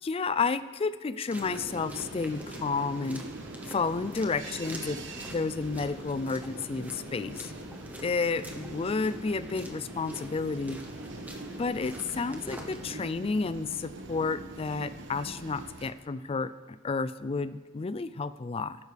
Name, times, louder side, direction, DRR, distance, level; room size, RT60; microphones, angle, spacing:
voice 1, 0.0-3.2 3.7-5.0 5.3-7.5 8.0-10.8 11.6-18.8, left 4 dB, 30° left, 14 dB, 0.4 m, -31 dB
sound 1, 1.3-13.0, equal, 10° right, 0.9 m, -46 dB
sound 2, 1.4-15.9, right 2 dB, 85° right, 1.1 m, -43 dB
18.0 x 11.0 x 3.4 m, 1.4 s
head